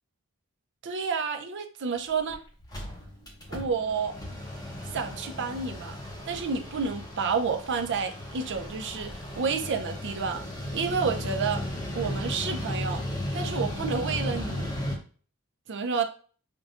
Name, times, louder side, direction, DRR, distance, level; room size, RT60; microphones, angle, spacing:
voice 1, 0.8-2.4 3.5-4.1 4.9-6.0 6.3-10.4 10.7-11.6 11.9-13.0 13.3-14.7 15.7-16.0, right 5 dB, 55° right, 6 dB, 0.5 m, -30 dB
Mechanical fan, 1.9-2.0 2.3-2.4 2.6-15.0, left 1 dB, 15° left, 0.8 m, -35 dB
5.5 x 2.2 x 2.5 m, 0.41 s
head